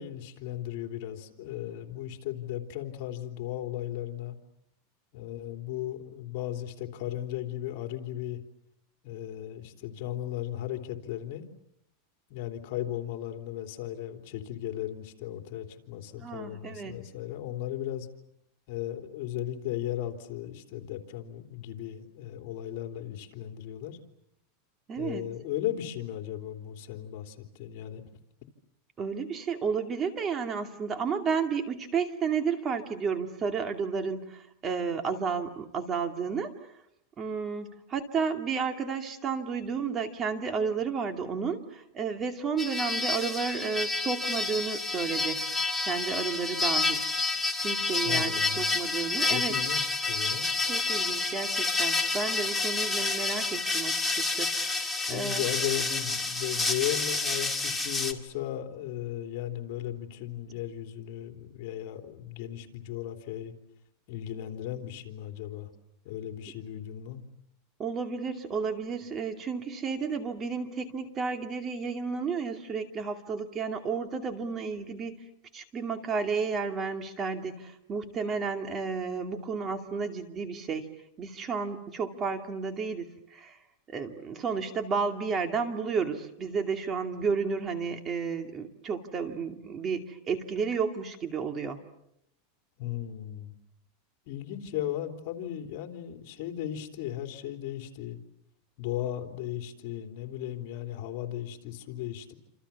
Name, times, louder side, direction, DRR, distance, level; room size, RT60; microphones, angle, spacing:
voice 1, 0.0-4.4 5.1-8.4 9.0-11.4 12.3-18.1 18.7-24.0 25.0-28.0 48.0-48.7 49.3-50.5 55.1-63.5 64.1-65.7 66.0-67.2 92.8-93.5 94.3-98.2 98.8-102.3, left 12 dB, 55° left, 6 dB, 3.6 m, -36 dB
voice 2, 16.2-17.0 24.9-25.3 29.0-36.5 37.2-45.4 45.8-47.1 47.6-49.6 50.7-55.4 67.8-75.2 75.5-80.9 81.2-83.6 83.9-91.8, right 5 dB, 25° right, 6 dB, 2.6 m, -32 dB
sound 1, 42.6-58.1, left 3 dB, 5° left, 2.4 m, -29 dB
28.5 x 27.5 x 7.2 m, 0.77 s
supercardioid pair, 145°, 0 cm